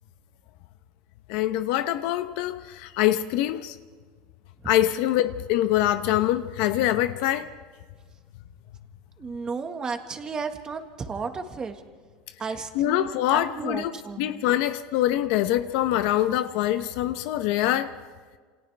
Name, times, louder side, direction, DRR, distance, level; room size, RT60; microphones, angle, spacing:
voice 1, 1.3-3.8 4.6-7.5 12.7-17.9, left 13 dB, 60° left, 0.9 m, -24 dB
voice 2, 9.2-11.7 12.4-14.4, right 5 dB, 20° right, 1.6 m, -33 dB
29.0 x 28.0 x 3.4 m
supercardioid pair, 160°, 4 cm